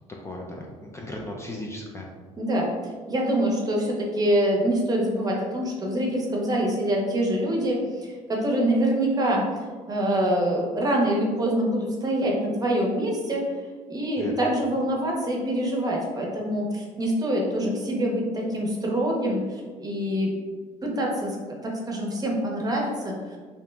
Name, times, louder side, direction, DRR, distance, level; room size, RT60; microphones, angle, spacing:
voice 1, 0.2-2.1 14.2-14.3, left 1 dB, 20° left, -1 dB, 0.4 m, -36 dB
voice 2, 2.4-9.4 9.9-13.4 13.9-20.3 20.8-23.2, right 1 dB, 30° right, -1 dB, 0.7 m, -25 dB
2.8 x 2.0 x 3.3 m, 1.5 s
supercardioid pair, 90°, 14 cm